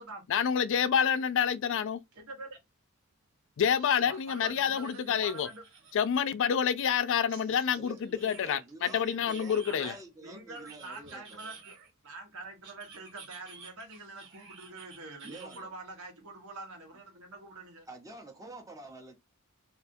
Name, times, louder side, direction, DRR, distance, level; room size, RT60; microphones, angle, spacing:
voice 1, 0.3-2.0 3.6-5.5 5.9-9.9, left 8 dB, 60° left, 0.4 m, -28 dB
sound 1, 2.1-2.2 2.6-2.7 3.6-6.2 7.3-10.0 10.5-12.1 12.6-15.6, right 5 dB, 60° right, 1.1 m, -53 dB
voice 2, 2.2-2.6 4.1-5.6 9.6-11.8 12.0-17.9, right 2 dB, 80° right, 1.1 m, -45 dB
voice 3, 7.8-11.6 15.2-15.7 17.9-19.2, right 2 dB, 15° right, 0.7 m, -48 dB
3.4 x 2.5 x 2.6 m
head